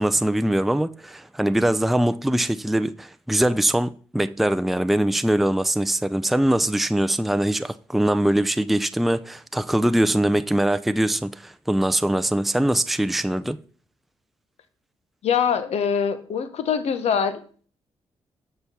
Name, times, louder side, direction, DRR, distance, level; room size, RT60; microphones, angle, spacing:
voice 1, 0.0-13.6, right 1 dB, ahead, 0.4 m, -22 dB
voice 2, 15.2-17.7, left 7 dB, 75° left, 1.0 m, -24 dB
6.9 x 4.5 x 6.7 m
supercardioid pair, 55°, 11 cm